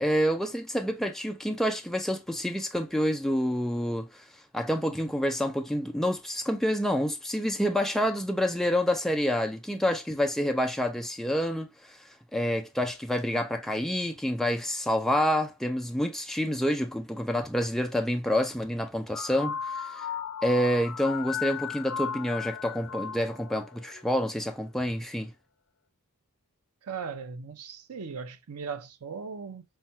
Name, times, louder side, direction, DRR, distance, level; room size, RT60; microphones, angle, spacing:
voice 1, 0.0-4.2 4.5-12.0 12.3-20.1 20.4-25.3, equal, ahead, 0.4 m, -28 dB
sound 1, 19.1-24.2, left 7 dB, 80° left, 0.6 m, -36 dB
voice 2, 26.8-29.6, right 5 dB, 90° right, 0.6 m, -38 dB
5.6 x 2.2 x 2.7 m
head